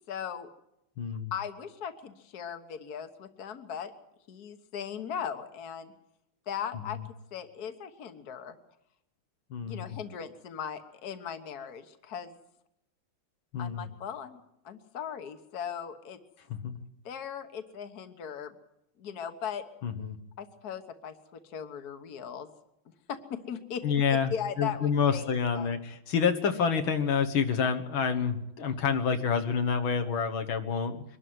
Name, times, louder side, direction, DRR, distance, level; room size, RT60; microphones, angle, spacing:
voice 1, 0.1-0.5 1.3-3.9 4.3-5.9 6.5-7.0 7.3-8.6 9.6-12.3 13.6-16.2 17.1-18.5 19.0-19.6 20.4-22.5 23.1-23.8 24.1-25.2 25.6-25.7, left 8 dB, 55° left, 9 dB, 1.8 m, -38 dB
voice 2, 1.0-1.3 6.7-7.0 9.5-9.8 13.5-13.9 16.5-16.8 19.8-20.2 23.8-31.0, left 6 dB, 80° left, 5 dB, 2.2 m, -28 dB
23.5 x 12.5 x 9.6 m, 0.80 s
omnidirectional pair, 2.2 m